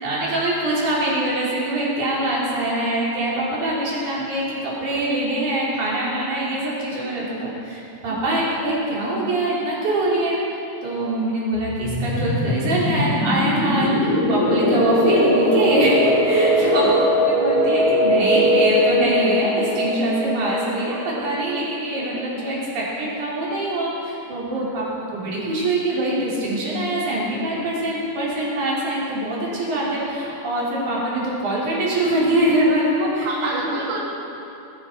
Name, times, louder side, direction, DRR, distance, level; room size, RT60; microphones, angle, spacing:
voice 1, 0.0-10.4 10.8-24.8 25.1-33.8, right 1 dB, 90° right, -6 dB, 4.7 m, -23 dB
sound 1, 11.5-22.0, equal, 30° left, 2.6 m, -20 dB
voice 2, 24.4-24.9 33.2-34.0, right 3 dB, 60° right, -5 dB, 3.0 m, -30 dB
20.0 x 11.0 x 4.4 m, 2.8 s
omnidirectional pair, 3.4 m